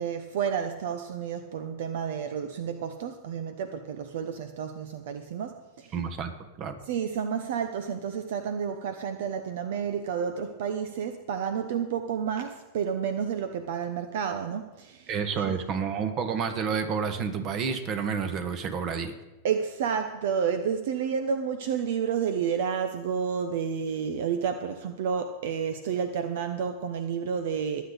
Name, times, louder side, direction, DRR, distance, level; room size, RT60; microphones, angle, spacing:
voice 1, 0.0-5.9 6.9-15.1 15.4-15.5 19.4-27.8, right 7 dB, 70° right, 8 dB, 0.9 m, -30 dB
voice 2, 5.9-6.3 6.6-6.8 15.1-19.1, right 6 dB, 40° right, 9 dB, 1.7 m, -29 dB
22.5 x 8.4 x 4.1 m, 1.0 s
hypercardioid pair, 120°, 0 cm